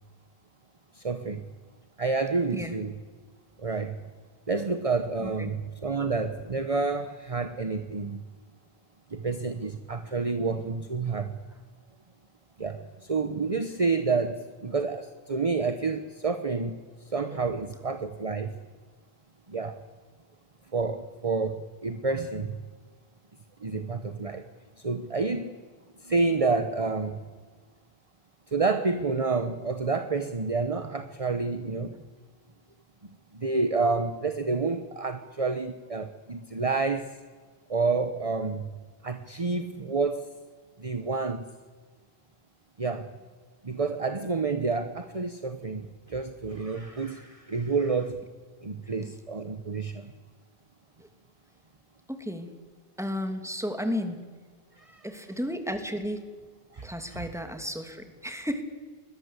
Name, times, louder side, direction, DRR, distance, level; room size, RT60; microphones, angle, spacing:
voice 1, 0.9-1.5 2.0-3.0 3.6-4.0 4.5-8.2 9.1-11.4 12.6-18.6 19.5-19.8 20.7-22.7 23.6-24.5 24.8-25.6 26.0-27.2 28.5-32.0 33.3-37.2 37.7-38.7 39.0-40.3 40.8-41.5 42.8-43.1 43.6-48.2 48.6-50.1 54.8-55.1 56.7-57.3, right 4 dB, 35° right, 9 dB, 1.1 m, -29 dB
voice 2, 5.2-5.5 52.1-52.5 53.0-54.2 55.0-56.2 56.8-58.6, equal, 5° right, 6 dB, 2.7 m, -33 dB
28.0 x 21.5 x 8.3 m, 1.5 s
omnidirectional pair, 1.0 m